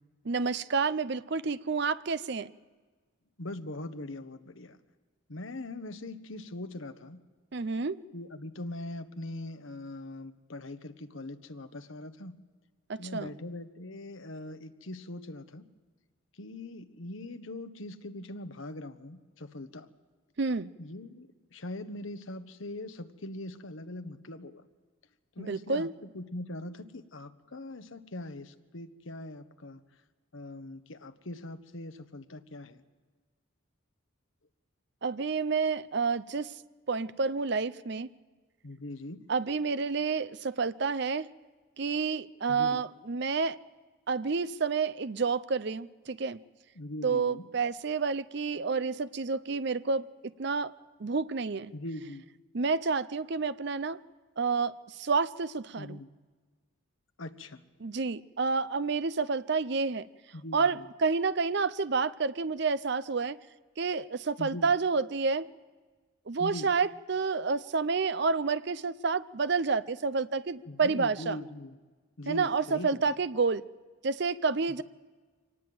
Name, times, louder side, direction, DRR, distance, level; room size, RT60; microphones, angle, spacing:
voice 1, 0.2-2.5 7.5-8.0 12.9-13.3 20.4-20.7 25.4-25.9 35.0-36.5 36.9-38.1 39.3-41.3 41.8-43.6 44.1-46.4 47.0-50.7 51.0-51.7 52.5-54.0 54.4-56.0 57.8-60.1 60.5-63.4 63.8-65.5 66.3-71.4 72.3-73.6 74.0-74.8, right 4 dB, 55° right, 0.6 m, -29 dB
voice 2, 3.4-4.8 5.3-7.2 8.1-12.3 13.0-15.7 16.4-19.9 20.8-24.7 25.3-25.9 26.1-29.8 30.3-32.8 38.6-39.2 42.5-42.8 46.7-47.5 51.7-52.3 55.7-56.1 57.2-57.6 60.3-60.8 64.4-64.7 66.4-66.7 70.7-71.8 72.2-73.1, left 1 dB, 70° left, 1.2 m, -41 dB
25.0 x 19.0 x 7.8 m
head